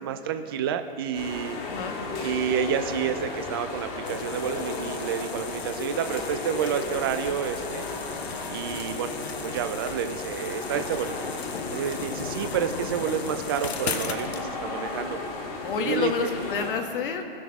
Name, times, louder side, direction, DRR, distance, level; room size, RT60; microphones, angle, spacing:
voice 1, 0.0-1.6 2.2-7.9 8.5-9.1 9.4-11.2 11.7-15.2 15.8-16.3, right 8 dB, 25° right, 8 dB, 0.3 m, -29 dB
sound 1, 1.1-16.7, left 3 dB, 35° left, 1.8 m, -35 dB
voice 2, 1.6-2.0 15.6-17.2, left 6 dB, 60° left, 5 dB, 1.4 m, -29 dB
sound 2, 4.1-14.4, left 6 dB, 85° left, 0.9 m, -37 dB
18.0 x 6.3 x 3.5 m, 2.5 s
hypercardioid pair, 145°, 31 cm